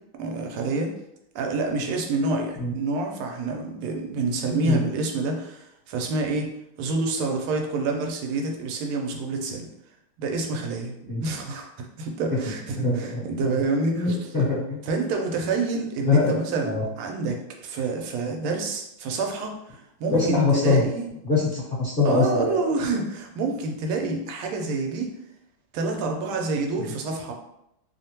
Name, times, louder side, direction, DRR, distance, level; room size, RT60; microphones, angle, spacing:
voice 1, 0.2-1.0 1.3-6.5 6.8-9.7 10.2-11.0 11.2-14.1 14.9-21.1 22.0-25.1 25.7-27.3, right 3 dB, 90° right, 2 dB, 1.4 m, -28 dB
voice 2, 12.8-13.2 13.9-14.9 16.0-16.8 20.1-20.8 21.2-22.6, left 3 dB, 35° left, -11 dB, 0.9 m, -23 dB
3.4 x 2.1 x 2.8 m, 0.81 s
omnidirectional pair, 2.3 m